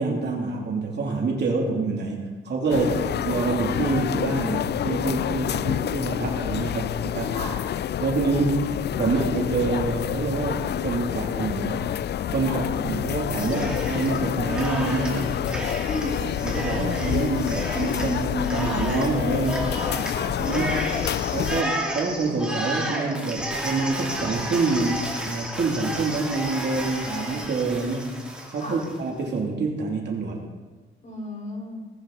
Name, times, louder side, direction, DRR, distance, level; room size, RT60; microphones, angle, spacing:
voice 1, 0.0-2.9 3.2-7.3 8.0-8.7 9.0-12.0 12.3-15.5 16.4-19.7 20.4-20.8 21.3-28.2 28.5-30.4, right 3 dB, 55° right, -1 dB, 3.2 m, -26 dB
sound 1, 2.7-21.6, left 10 dB, 55° left, 0.4 m, -28 dB
voice 2, 2.7-3.2 7.3-7.6 12.4-12.6 15.8-16.3 20.0-20.4 28.5-28.8 31.0-31.8, left 1 dB, 35° left, -2 dB, 4.9 m, -34 dB
Cheering, 13.3-14.2 14.5-29.0, right 1 dB, 5° right, 3.0 m, -32 dB
19.5 x 9.8 x 4.3 m, 1.3 s
cardioid pair, 110°, 21 cm